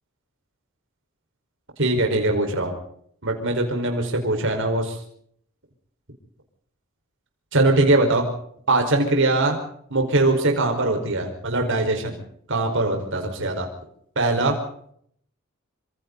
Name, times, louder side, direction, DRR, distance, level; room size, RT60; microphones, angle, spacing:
voice 1, 1.8-2.7 3.2-5.0 7.5-8.3 8.7-9.6 9.9-12.2 12.5-13.7 14.1-14.6, right 2 dB, 65° right, 3 dB, 5.1 m, -21 dB
27.0 x 26.5 x 4.1 m, 0.65 s
head